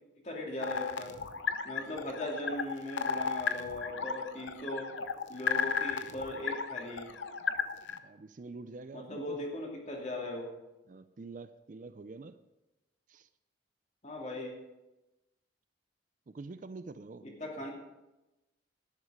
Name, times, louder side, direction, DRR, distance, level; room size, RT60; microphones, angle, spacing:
voice 1, 0.2-1.1 1.6-4.9 5.3-7.1 8.9-10.5 14.0-14.5 17.2-17.7, left 1 dB, 35° left, -1 dB, 2.7 m, -39 dB
sound 1, 0.6-8.0, left 6 dB, 70° left, 0.7 m, -34 dB
voice 2, 7.9-9.4 10.9-12.4 13.1-13.3 16.3-17.3, right 3 dB, 40° right, 12 dB, 0.4 m, -46 dB
12.0 x 10.5 x 5.0 m, 1.0 s
head